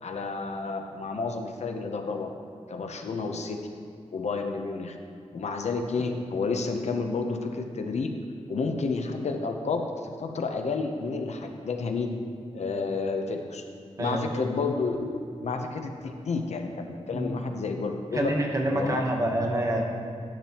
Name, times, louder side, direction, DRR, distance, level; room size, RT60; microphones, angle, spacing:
voice 1, 0.0-2.3 2.7-3.6 4.1-5.0 5.3-8.1 8.5-12.1 12.5-13.6 14.0-18.3 18.7-19.0, left 4 dB, 70° left, 5 dB, 0.7 m, -30 dB
voice 2, 18.1-19.8, right 1 dB, 30° right, 0 dB, 1.0 m, -27 dB
10.0 x 8.9 x 2.9 m, 2.4 s
wide cardioid pair, 155°, 12 cm